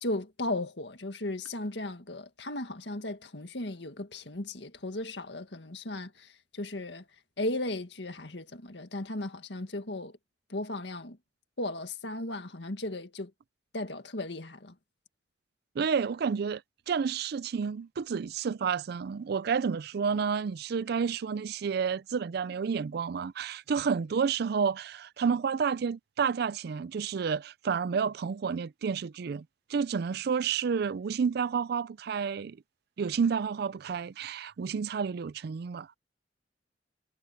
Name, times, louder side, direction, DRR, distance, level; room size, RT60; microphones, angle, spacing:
voice 1, 0.0-7.0 7.4-10.2 10.5-11.2 11.6-13.3 13.7-14.7, left 2 dB, 70° left, 1.9 m, -36 dB
voice 2, 15.8-16.6 16.9-29.4 29.7-32.6 33.0-35.9, right 6 dB, 60° right, 0.4 m, -30 dB
head